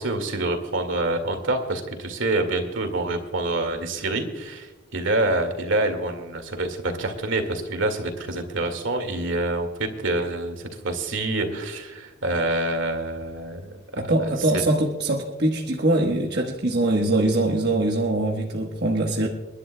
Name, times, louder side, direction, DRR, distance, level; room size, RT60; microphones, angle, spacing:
voice 1, 0.0-14.6, right 2 dB, 75° right, 6 dB, 2.0 m, -27 dB
voice 2, 14.0-19.3, right 2 dB, 55° right, 0 dB, 1.2 m, -23 dB
29.0 x 11.5 x 2.2 m, 1.2 s
head